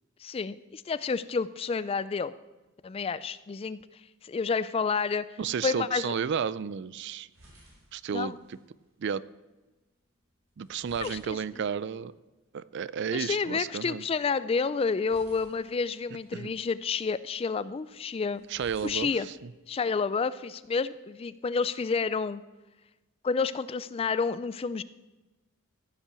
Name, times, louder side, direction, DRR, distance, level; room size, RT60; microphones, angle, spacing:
voice 1, 0.2-2.3 2.8-3.8 4.2-5.3 5.6-6.1 8.1-8.4 11.0-11.4 13.1-18.5 18.8-19.3 19.7-22.4 23.2-24.8, left 5 dB, 25° left, 16 dB, 0.3 m, -29 dB
voice 2, 5.4-7.3 7.9-8.6 9.0-9.2 10.6-12.1 12.5-14.0 16.3-16.5 18.5-19.1, right 7 dB, 55° right, 18 dB, 0.4 m, -32 dB
sound 1, 6.6-20.2, right 1 dB, 80° right, 4.7 m, -60 dB
15.0 x 5.8 x 6.9 m, 1.1 s
head